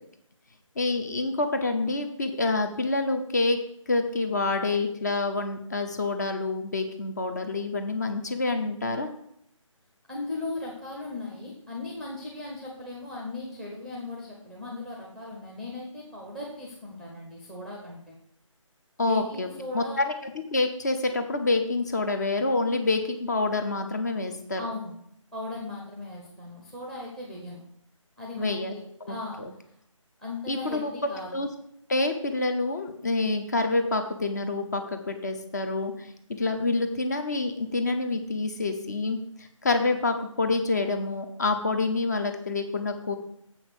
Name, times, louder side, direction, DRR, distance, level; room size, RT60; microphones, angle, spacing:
voice 1, 0.8-3.6 3.9-9.1 19.0-19.5 19.7-24.6 28.4-28.7 29.0-29.5 30.5-30.9 31.3-31.5 31.9-43.2, left 3 dB, 30° left, 6 dB, 0.9 m, -27 dB
voice 2, 10.1-18.2 19.0-20.0 24.6-24.9 25.3-27.6 28.2-29.4 30.2-31.3, left 2 dB, ahead, -2 dB, 0.8 m, -37 dB
7.4 x 5.8 x 6.8 m, 0.72 s
figure-of-eight pair, 160°, 17 cm